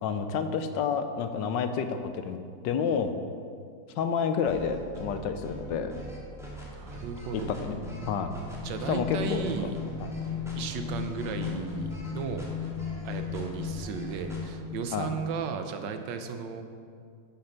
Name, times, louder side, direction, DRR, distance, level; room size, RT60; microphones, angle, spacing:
voice 1, 0.0-2.4 2.6-3.1 4.0-5.9 7.3-8.3 8.9-9.4 10.0-10.1 14.9-15.1, left 6 dB, 80° left, 8 dB, 1.3 m, -29 dB
sound 1, 4.5-14.4, equal, ahead, 1.7 m, -42 dB
voice 2, 6.7-7.5 8.6-9.8 10.6-12.5 13.0-16.6, right 6 dB, 80° right, 7 dB, 1.4 m, -35 dB
sound 2, 7.5-15.2, left 6 dB, 50° left, 0.9 m, -37 dB
10.0 x 5.9 x 5.8 m, 2.2 s
omnidirectional pair, 1.9 m